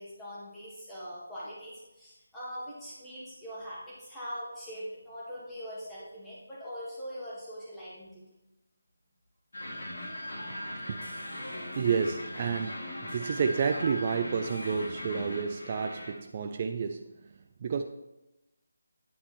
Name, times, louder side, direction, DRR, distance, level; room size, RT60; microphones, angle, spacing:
voice 1, 0.0-8.2, equal, 5° left, -10 dB, 2.2 m, -42 dB
sound 1, 9.5-16.1, left 1 dB, 70° left, 2.4 m, -39 dB
voice 2, 11.4-17.1 17.6-17.8, right 6 dB, 35° right, 5 dB, 0.4 m, -30 dB
9.2 x 4.2 x 4.3 m, 0.96 s
figure-of-eight pair, 160°, 0 cm